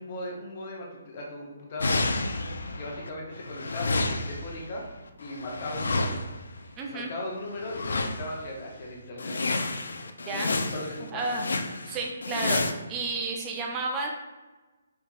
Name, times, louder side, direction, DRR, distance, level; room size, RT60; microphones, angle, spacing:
voice 1, 0.0-2.1 2.8-4.8 5.2-6.2 6.9-9.5 10.3-11.3, left 1 dB, 30° left, -2 dB, 0.7 m, -37 dB
sound 1, 1.8-3.1 3.3-6.6 7.6-8.5 8.8-8.9 9.2-12.7, left 3 dB, 85° left, 0.3 m, -30 dB
voice 2, 6.8-7.1 10.3-10.5 11.1-11.5 11.9-12.6 12.9-14.1, right 3 dB, 15° right, 1 dB, 0.3 m, -31 dB
4.6 x 2.7 x 2.3 m, 1.2 s
hypercardioid pair, 175°, 0 cm